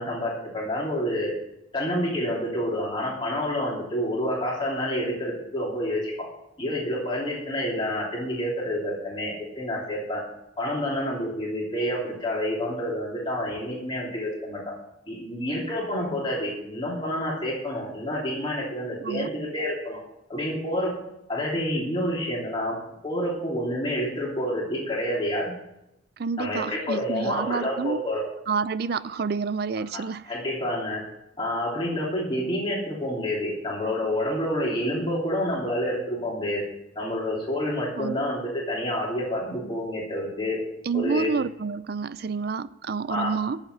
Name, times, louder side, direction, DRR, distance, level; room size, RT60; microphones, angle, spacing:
voice 1, 0.0-1.3 1.7-6.3 6.6-10.2 10.6-14.6 15.1-20.0 20.3-21.0 21.3-22.8 23.0-25.6 26.4-28.3 29.9-31.0 31.4-36.6 36.9-40.6 40.9-41.3 43.1-43.3, left 1 dB, 25° left, 3.1 m, -28 dB
voice 2, 26.2-28.0 28.5-30.3 38.0-38.2 40.9-43.6, right 5 dB, 55° right, 0.4 m, -29 dB
8.9 x 7.3 x 8.0 m
head